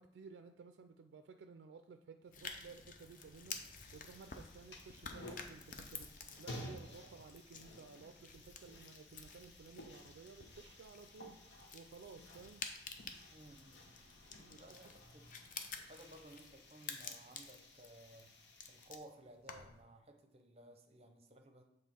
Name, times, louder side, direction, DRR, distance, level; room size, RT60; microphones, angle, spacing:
voice 1, 0.0-11.5 11.7-12.6 14.4-14.6, right 5 dB, 85° right, 7 dB, 0.3 m, -56 dB
sound 1, 2.3-18.9, left 1 dB, 80° left, 0.9 m, -56 dB
sound 2, 2.3-19.8, left 5 dB, 50° left, 0.5 m, -51 dB
voice 2, 13.3-15.3 15.9-18.3 18.7-21.6, right 1 dB, 35° right, 5 dB, 0.7 m, -58 dB
7.4 x 3.2 x 4.3 m, 0.86 s
head